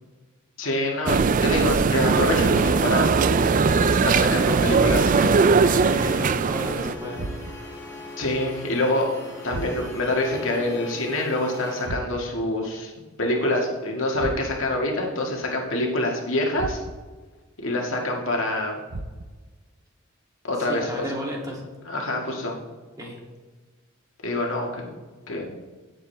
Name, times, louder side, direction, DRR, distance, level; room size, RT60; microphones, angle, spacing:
voice 1, 0.6-3.1 4.0-5.1 8.2-9.1 9.4-12.9 13.2-16.8 17.6-18.8 20.5-21.1 21.9-22.6 24.2-24.9 25.3-25.5, left 1 dB, 70° left, 0 dB, 2.1 m, -26 dB
sound 1, 1.1-7.0, right 4 dB, 40° right, 0.4 m, -20 dB
sound 2, 2.1-11.9, left 1 dB, 15° left, 2.7 m, -39 dB
sound 3, 4.8-5.5 7.2-7.8 9.5-10.1 11.8-12.5 14.2-14.8 16.6-17.2 18.9-19.5, right 2 dB, 80° right, 0.8 m, -36 dB
voice 2, 5.1-7.2 20.6-21.6 23.0-23.2, equal, 20° right, -3 dB, 2.7 m, -34 dB
17.5 x 7.6 x 3.5 m, 1.3 s
head